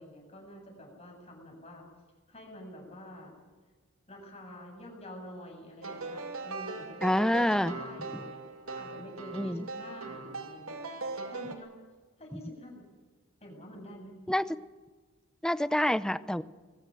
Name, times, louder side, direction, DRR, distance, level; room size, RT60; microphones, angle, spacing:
voice 1, 0.0-1.9 2.3-3.4 4.1-10.8 11.3-11.7 12.2-12.8 13.4-14.1, left 1 dB, 30° left, 1 dB, 7.5 m, -47 dB
sound 1, 5.8-11.5, right 3 dB, 85° right, 2.6 m, -40 dB
voice 2, 7.0-7.7 9.3-9.7 12.3-12.4 14.3-14.4 15.4-16.4, left 1 dB, 5° left, 15 dB, 0.6 m, -27 dB
21.5 x 15.5 x 9.1 m, 1.4 s
head